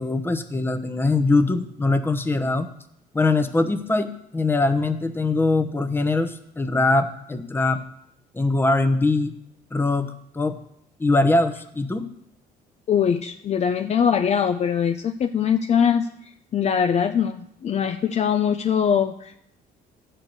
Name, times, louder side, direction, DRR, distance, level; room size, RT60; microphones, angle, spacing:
voice 1, 0.0-2.7 3.1-7.8 8.3-9.3 9.7-10.6 11.0-12.1, left 2 dB, 15° left, 7 dB, 0.9 m, -22 dB
voice 2, 12.9-16.1 16.5-19.4, left 7 dB, 40° left, 7 dB, 0.5 m, -22 dB
12.0 x 4.5 x 7.9 m, 0.74 s
cardioid pair, 110°, 17 cm